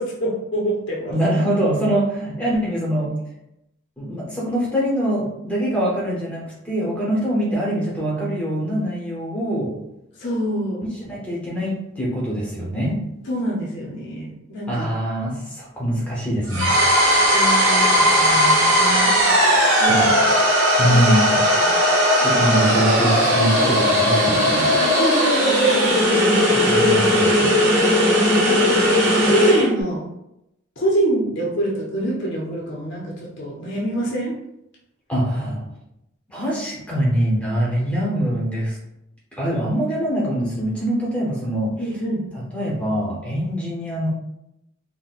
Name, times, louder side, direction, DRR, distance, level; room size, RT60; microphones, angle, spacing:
voice 1, 0.0-1.2 10.2-10.8 13.2-14.9 17.3-19.2 19.8-20.0 20.9-21.1 21.6-21.8 22.2-22.4 24.8-27.1 28.3-28.8 29.2-30.1 30.8-34.3 41.8-42.3, right 1 dB, 60° left, -3 dB, 0.6 m, -25 dB
voice 2, 1.1-3.1 4.0-9.8 11.1-13.0 14.7-17.1 19.8-20.1 20.8-21.4 22.2-24.7 26.7-27.6 35.1-35.7 36.3-38.8 39.4-41.8 42.5-44.1, equal, 5° left, -5 dB, 0.8 m, -23 dB
sound 1, 16.5-29.7, equal, 80° right, 1.1 m, -17 dB
3.8 x 2.1 x 2.4 m, 0.84 s
head